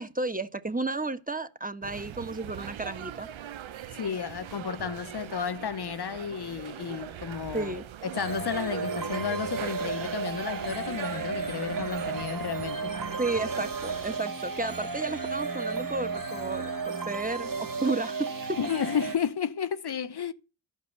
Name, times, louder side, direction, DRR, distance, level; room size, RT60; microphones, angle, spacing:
voice 1, 0.0-3.3 7.5-7.9 13.2-18.6, right 2 dB, 15° right, 1.4 m, -32 dB
sound 1, 1.8-14.2, right 10 dB, 75° right, 0.9 m, -41 dB
voice 2, 3.9-7.7 8.0-12.9 18.6-20.3, left 7 dB, 55° left, 1.0 m, -32 dB
sound 2, 8.1-19.2, right 4 dB, 45° right, 1.8 m, -34 dB
13.0 x 5.4 x 8.0 m
cardioid pair, 40°, 47 cm